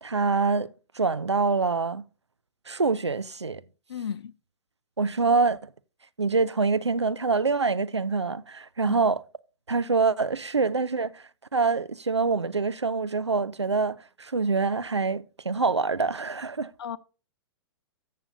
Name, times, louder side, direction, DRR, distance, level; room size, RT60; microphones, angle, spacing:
voice 1, 0.0-2.1 2.7-3.6 5.0-5.7 6.2-9.2 9.7-11.2 11.5-16.7, right 4 dB, 85° right, 0.5 m, -25 dB
voice 2, 3.9-4.3 8.8-9.0 16.8-17.0, left 8 dB, 65° left, 0.4 m, -33 dB
13.5 x 6.9 x 2.6 m
figure-of-eight pair, 105°, 14 cm